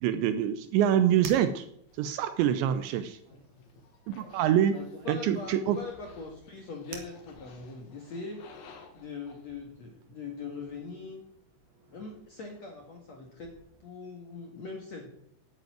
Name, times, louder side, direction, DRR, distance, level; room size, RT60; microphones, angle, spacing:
voice 1, 0.0-1.7 2.0-3.2 4.1-4.8 5.1-5.8, right 10 dB, 80° right, 10 dB, 2.7 m, -25 dB
sound 1, 0.6-13.9, right 5 dB, 55° right, 2.7 m, -55 dB
sound 2, 1.9-9.4, left 4 dB, 70° left, 4.4 m, -55 dB
voice 2, 4.7-8.4 8.9-11.2 11.9-13.5 13.8-15.1, left 4 dB, 55° left, 1 dB, 2.0 m, -41 dB
11.0 x 9.3 x 9.2 m, 0.74 s
omnidirectional pair, 5.6 m